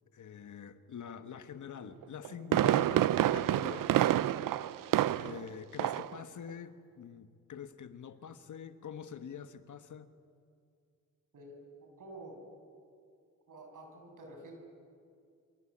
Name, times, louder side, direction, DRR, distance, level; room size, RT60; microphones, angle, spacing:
voice 1, 0.1-4.7 5.2-10.1, left 7 dB, 65° left, 10 dB, 1.5 m, -46 dB
Fireworks, 2.0-5.5 5.8-6.2 6.5-6.6, right 12 dB, 90° right, 0.7 m, -28 dB
voice 2, 11.3-12.4 13.5-14.5, right 2 dB, 70° right, 3 dB, 7.4 m, -49 dB
27.5 x 24.5 x 8.8 m, 2.3 s
cardioid pair, 90°, 32 cm